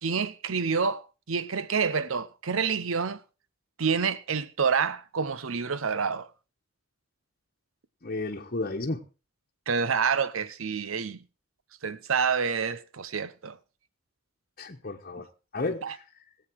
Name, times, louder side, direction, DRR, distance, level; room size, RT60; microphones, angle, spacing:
voice 1, 0.0-3.2 3.8-6.3 9.7-11.2 11.8-13.6 15.8-16.0, right 5 dB, 85° right, 0.8 m, -28 dB
voice 2, 8.0-9.0 14.6-15.3 15.5-16.0, left 2 dB, 45° left, 1.2 m, -32 dB
19.5 x 8.2 x 4.7 m
head